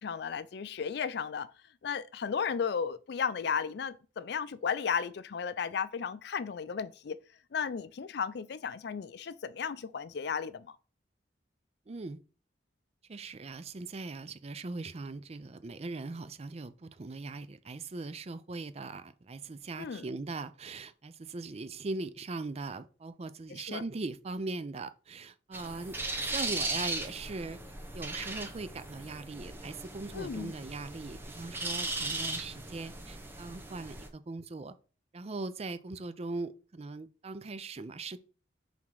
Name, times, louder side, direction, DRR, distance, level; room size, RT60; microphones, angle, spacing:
voice 1, 0.0-1.5 1.8-7.2 7.5-10.7 19.8-20.0 23.5-23.8 30.1-30.5, left 6 dB, 60° left, 0.4 m, -34 dB
voice 2, 11.9-12.2 13.1-26.0 26.2-27.6 27.9-34.8 35.1-38.2, right 3 dB, 35° right, 0.5 m, -40 dB
sound 1, 25.5-34.1, right 2 dB, 10° right, 0.8 m, -38 dB
5.8 x 3.6 x 4.7 m
head